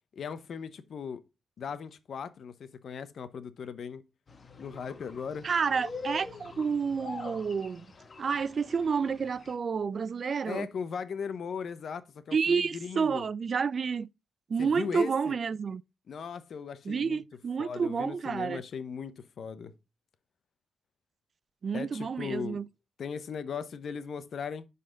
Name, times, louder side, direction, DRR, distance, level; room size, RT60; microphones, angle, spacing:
voice 1, 0.1-1.2 1.6-4.0 4.6-5.5 10.4-13.3 14.6-15.3 16.1-17.2 17.6-19.7 21.7-22.6 23.0-24.7, left 6 dB, 70° left, 0.8 m, -38 dB
sound 1, 4.3-9.6, left 4 dB, 40° left, 1.1 m, -45 dB
voice 2, 5.4-7.9 8.2-10.7 12.3-14.1 14.5-15.8 16.9-18.6 21.6-22.7, right 5 dB, 50° right, 0.4 m, -29 dB
11.0 x 4.2 x 3.7 m
cardioid pair, 100°, 0 cm